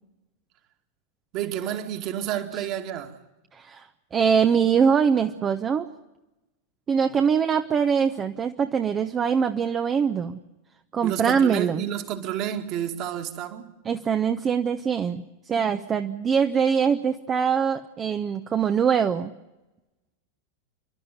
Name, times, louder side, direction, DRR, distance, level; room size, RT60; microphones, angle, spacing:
voice 1, 1.3-3.2 7.1-7.2 11.0-13.7, right 10 dB, 40° right, 2.2 m, -30 dB
voice 2, 3.5-5.9 6.9-10.4 10.9-11.8 13.9-19.3, right 7 dB, 25° right, 0.9 m, -23 dB
29.5 x 12.0 x 9.4 m
figure-of-eight pair, 90°, 0 cm